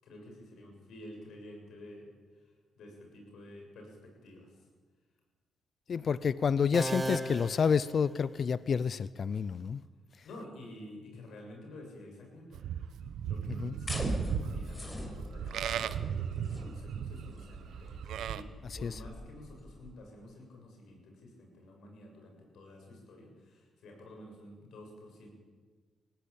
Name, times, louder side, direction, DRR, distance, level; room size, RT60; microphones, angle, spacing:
voice 1, 0.0-2.1 2.3-4.7 10.2-12.7 13.2-25.3, left 1 dB, 75° left, 2 dB, 7.2 m, -50 dB
voice 2, 5.9-9.8 13.6-13.7 18.8-18.9, left 6 dB, 55° left, 18 dB, 0.6 m, -29 dB
sound 1, 6.7-8.6, right 2 dB, 25° right, 1.4 m, -37 dB
Livestock farm animals working animals, 12.5-18.4, right 9 dB, 80° right, 0.8 m, -36 dB
sound 2, 13.8-19.9, left 1 dB, 20° left, 4.9 m, -41 dB
20.0 x 16.0 x 8.8 m, 1.4 s
cardioid pair, 70°, 0 cm